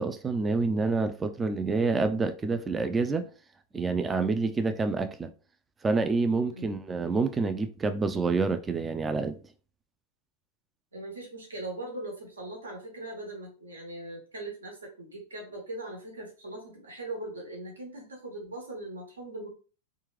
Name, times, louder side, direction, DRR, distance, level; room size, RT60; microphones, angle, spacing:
voice 1, 0.0-3.3 3.7-5.3 5.8-9.4, right 4 dB, 15° right, 0.3 m, -27 dB
voice 2, 10.9-19.5, right 2 dB, 70° right, 1.3 m, -40 dB
3.3 x 3.0 x 3.2 m
figure-of-eight pair, 90°, 0 cm